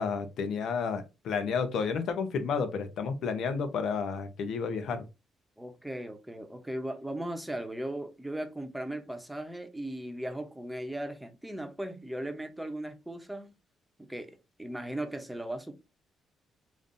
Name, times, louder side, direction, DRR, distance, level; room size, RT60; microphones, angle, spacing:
voice 1, 0.0-5.0, left 5 dB, 70° left, 0.8 m, -31 dB
voice 2, 5.6-13.5 14.0-15.7, right 1 dB, 5° right, 0.8 m, -37 dB
5.1 x 2.6 x 2.6 m
cardioid pair, 90°, 0 cm